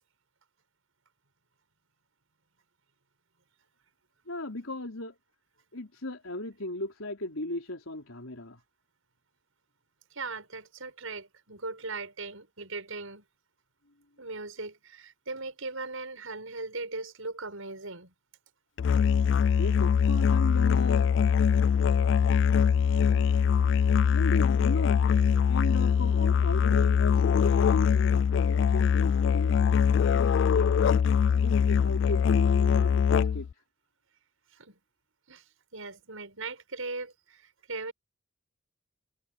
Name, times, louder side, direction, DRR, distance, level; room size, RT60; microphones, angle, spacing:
voice 1, 4.3-5.2 5.7-8.6 19.6-21.1 24.1-25.0 25.5-29.8 30.1-30.8 31.3-33.5, left 1 dB, 85° left, 4.2 m, -36 dB
voice 2, 10.1-13.2 14.2-18.1 34.5-34.8 35.3-35.4 35.7-37.9, right 3 dB, 80° right, 6.3 m, -39 dB
Musical instrument, 18.8-33.5, left 7 dB, 60° left, 0.3 m, -23 dB
head